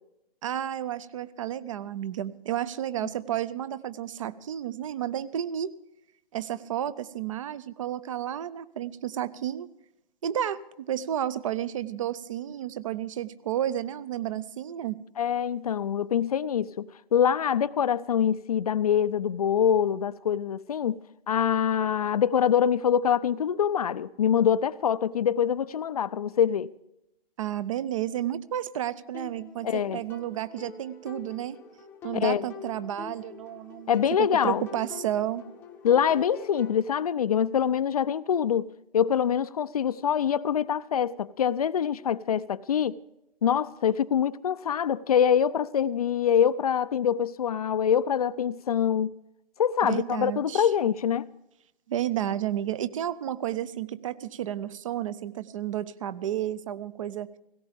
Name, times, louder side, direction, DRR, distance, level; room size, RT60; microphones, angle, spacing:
voice 1, 0.4-5.7 6.3-9.7 10.2-15.0 27.4-31.6 32.0-35.4 49.8-50.7 51.9-57.3, right 11 dB, 35° right, 0.6 m, -31 dB
voice 2, 15.2-21.0 21.3-26.7 29.6-30.0 32.1-32.4 33.9-34.6 35.8-43.0 43.4-49.1 49.6-51.3, left 8 dB, 40° left, 0.5 m, -25 dB
sound 1, 29.1-36.8, left 6 dB, 5° left, 0.8 m, -45 dB
17.5 x 17.5 x 3.5 m
figure-of-eight pair, 135°, 30 cm